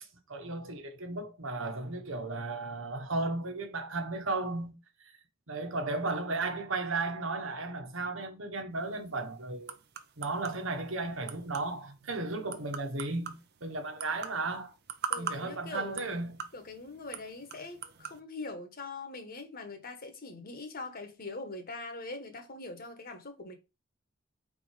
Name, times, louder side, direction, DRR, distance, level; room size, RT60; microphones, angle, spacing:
voice 1, 0.3-4.8 5.5-9.7 10.2-14.7 15.2-16.4, right 3 dB, 85° right, 1.3 m, -35 dB
sound 1, 8.8-18.2, right 7 dB, 55° right, 0.7 m, -43 dB
voice 2, 15.1-16.1 16.5-23.5, left 3 dB, 50° left, 1.3 m, -42 dB
4.6 x 4.3 x 4.8 m
head